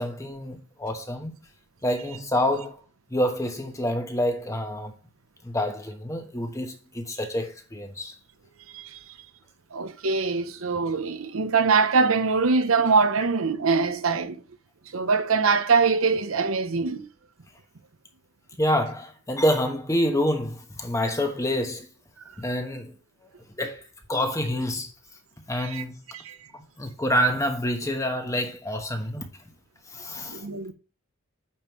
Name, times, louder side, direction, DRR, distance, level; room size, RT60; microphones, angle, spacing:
voice 1, 0.0-1.3 1.8-2.8 3.1-4.9 5.4-8.2 18.6-21.9 22.4-22.9 23.6-23.8 24.1-24.9 25.5-25.9 26.5-29.3 29.9-30.4, equal, 15° left, 1.1 m, -27 dB
voice 2, 9.7-14.4 14.9-17.1 25.6-25.8 26.1-26.4 30.3-30.7, right 4 dB, 85° right, 0.8 m, -23 dB
8.8 x 5.4 x 3.1 m
head